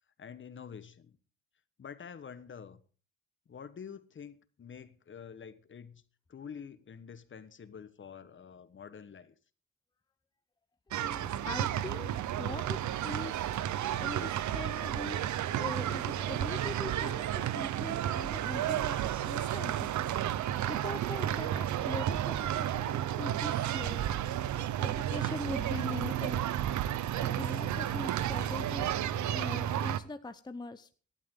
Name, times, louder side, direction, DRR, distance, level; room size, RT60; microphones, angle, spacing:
voice 1, 0.2-1.2 1.8-2.8 3.5-6.0 6.3-9.3, left 7 dB, 40° left, 1.3 m, -47 dB
voice 2, 10.9-12.8 13.0-13.6 14.0-15.2 15.6-19.9 20.7-24.1 24.8-26.5 27.2-29.0 29.3-30.9, left 3 dB, 15° left, 0.8 m, -42 dB
sound 1, 10.9-30.0, right 11 dB, 70° right, 0.9 m, -32 dB
18.0 x 12.0 x 3.8 m
cardioid pair, 90°, 30 cm